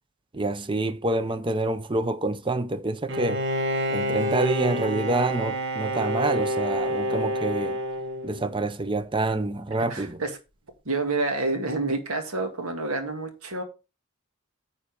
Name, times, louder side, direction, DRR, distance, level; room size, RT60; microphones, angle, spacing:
voice 1, 0.3-3.4 3.9-7.8 8.2-10.2, right 2 dB, 25° right, 0.7 m, -27 dB
Bowed string instrument, 3.1-8.7, equal, 55° right, 1.4 m, -28 dB
voice 2, 9.9-10.3 10.9-13.6, right 3 dB, 80° right, 2.0 m, -28 dB
9.4 x 4.4 x 5.2 m
head